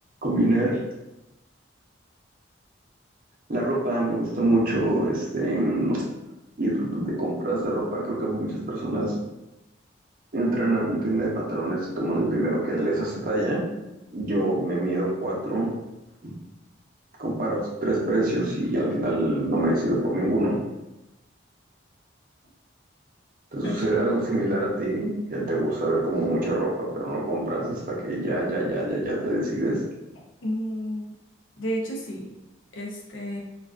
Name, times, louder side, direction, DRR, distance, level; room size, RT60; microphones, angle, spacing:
voice 1, 0.2-0.8 3.5-6.1 6.6-9.1 10.3-13.6 14.1-15.7 16.2-16.4 17.2-20.6 23.5-29.8, right 1 dB, 45° right, -3 dB, 0.6 m, -25 dB
voice 2, 30.4-31.1 31.6-32.3 32.7-33.4, equal, 85° left, -1 dB, 0.6 m, -31 dB
2.3 x 2.3 x 2.3 m, 0.95 s
head